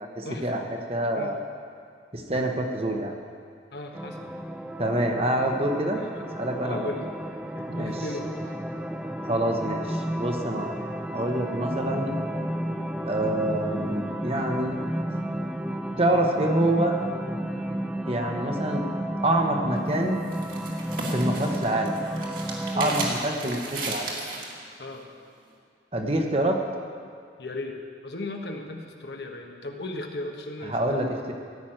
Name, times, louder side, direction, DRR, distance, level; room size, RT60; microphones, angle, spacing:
voice 1, 0.1-0.6 0.9-1.5 2.1-3.1 4.8-6.0 6.4-6.9 7.7-7.9 9.2-10.7 11.1-12.1 13.1-14.8 16.0-17.0 18.1-18.8 19.2-20.2 21.1-21.9 22.7-24.1 25.9-26.6 30.7-31.3, right 1 dB, 35° right, 3 dB, 1.1 m, -26 dB
voice 2, 3.7-4.3 6.0-6.3 6.6-7.1 7.5-8.5 11.5-11.7 22.7-22.9 24.8-25.0 27.4-31.1, left 2 dB, 70° left, 3 dB, 1.3 m, -36 dB
sound 1, 3.9-23.1, right 1 dB, 5° right, 0.5 m, -32 dB
sound 2, 19.8-24.6, right 2 dB, 50° right, 2.1 m, -35 dB
14.5 x 6.1 x 8.9 m, 2.2 s
head